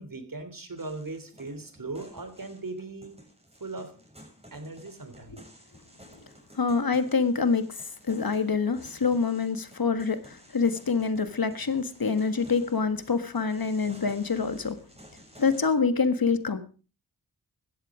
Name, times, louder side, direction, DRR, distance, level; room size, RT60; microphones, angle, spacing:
voice 1, 0.0-3.2 3.6-3.9 4.5-5.4, right 3 dB, 50° right, 10 dB, 3.3 m, -39 dB
sound 1, 0.8-15.7, equal, 15° right, 6.9 m, -53 dB
voice 2, 6.5-14.8 15.4-16.6, left 5 dB, 55° left, 11 dB, 1.6 m, -26 dB
16.0 x 13.0 x 5.0 m, 0.37 s
wide cardioid pair, 60°, 41 cm